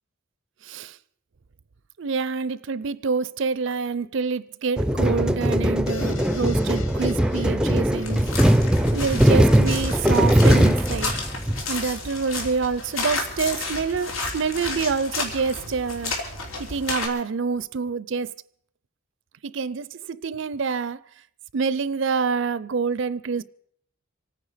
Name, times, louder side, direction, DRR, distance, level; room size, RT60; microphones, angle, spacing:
voice 1, 0.7-1.0 2.0-8.3 8.9-11.2 11.7-16.1 16.7-18.3 19.4-21.0 21.5-23.4, right 5 dB, 60° right, 0.5 m, -27 dB
sound 1, 4.8-11.6, equal, 5° right, 0.5 m, -20 dB
sound 2, 5.9-9.6, left 4 dB, 65° left, 1.1 m, -40 dB
sound 3, 8.0-17.1, left 3 dB, 85° left, 3.3 m, -32 dB
26.0 x 9.6 x 5.0 m
head